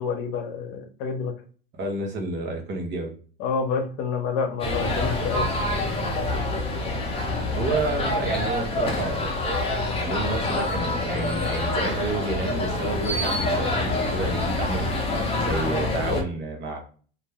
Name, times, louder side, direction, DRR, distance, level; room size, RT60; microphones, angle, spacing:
voice 1, 0.0-1.3 3.4-5.5, left 5 dB, 60° left, 4 dB, 0.8 m, -28 dB
voice 2, 1.8-3.1 7.5-9.3 9.9-14.9 15.3-16.8, right 2 dB, 40° right, 3 dB, 0.9 m, -30 dB
sound 1, 4.6-16.2, left 2 dB, 20° left, 0.8 m, -26 dB
2.5 x 2.1 x 3.3 m, 0.41 s
hypercardioid pair, 95°, 29 cm